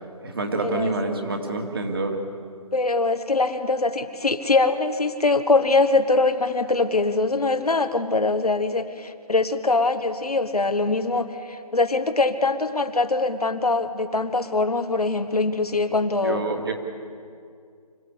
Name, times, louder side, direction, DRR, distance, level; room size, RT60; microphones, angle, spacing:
voice 1, 0.2-2.2 16.2-16.7, right 2 dB, 35° right, 3 dB, 2.3 m, -27 dB
voice 2, 2.7-16.4, left 3 dB, 75° left, 9 dB, 1.5 m, -23 dB
26.0 x 15.0 x 8.5 m, 2.3 s
figure-of-eight pair, 170°, 20 cm